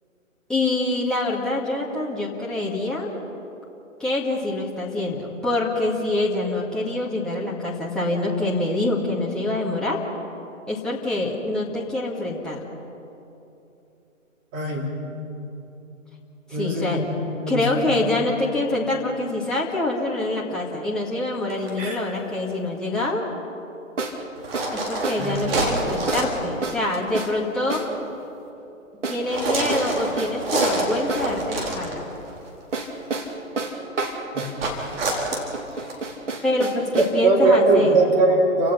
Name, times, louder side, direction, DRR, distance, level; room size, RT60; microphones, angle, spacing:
voice 1, 0.5-3.1 4.0-10.0 10.7-12.6 16.5-17.1 17.5-23.2 24.7-27.8 29.1-32.1 35.8-35.9 36.4-38.0, left 2 dB, ahead, -5 dB, 1.9 m, -25 dB
voice 2, 14.5-15.0 16.5-17.9 21.8-22.0 25.2-25.5 34.3-34.5 36.9-38.7, right 2 dB, 25° right, -2 dB, 4.0 m, -21 dB
sound 1, 20.0-20.2 24.0-24.2 24.5-24.8 25.0-25.3 25.5-25.8 26.1-26.3 26.6-26.8 27.1-27.4 27.7-27.9 29.0-29.3 29.7-31.3 32.7-34.6 35.3-37.2, right 3 dB, 65° right, 2.7 m, -30 dB
sound 2, 21.5-21.8 24.4-26.5 26.8-27.1 29.3-32.3 34.6-36.0, right 2 dB, 45° right, 4.4 m, -27 dB
30.0 x 17.0 x 5.7 m, 2.9 s
figure-of-eight pair, 135°, 40 cm